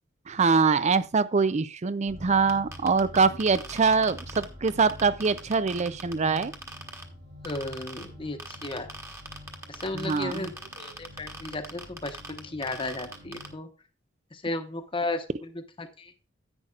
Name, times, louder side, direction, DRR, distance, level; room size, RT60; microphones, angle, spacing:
voice 1, 0.3-6.5 9.9-10.5, right 5 dB, 35° right, 0.5 m, -24 dB
sound 1, 2.1-13.6, left 1 dB, 70° right, 5.2 m, -47 dB
sound 2, 2.5-7.0 7.4-8.1 8.4-13.5, right 2 dB, 15° right, 1.3 m, -40 dB
voice 2, 7.4-8.9 9.7-13.7 14.3-16.1, left 2 dB, 25° left, 1.1 m, -34 dB
10.5 x 8.9 x 2.4 m
head